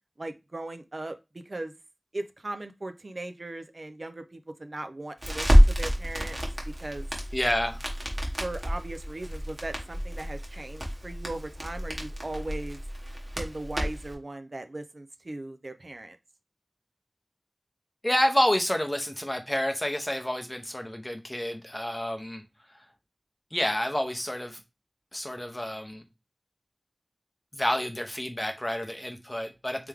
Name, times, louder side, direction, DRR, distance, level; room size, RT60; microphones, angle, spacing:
voice 1, 0.2-1.7 2.1-6.4 6.7-7.1 8.4-12.8 13.4-16.2, right 2 dB, 60° right, 0.4 m, -38 dB
Crackle, 5.2-14.1, equal, 40° right, 1.3 m, -27 dB
voice 2, 7.3-7.9 18.0-22.4 23.5-24.6 25.1-26.0 27.5-29.9, left 1 dB, 20° left, 0.7 m, -29 dB
3.4 x 3.3 x 3.3 m
wide cardioid pair, 40°, 0 cm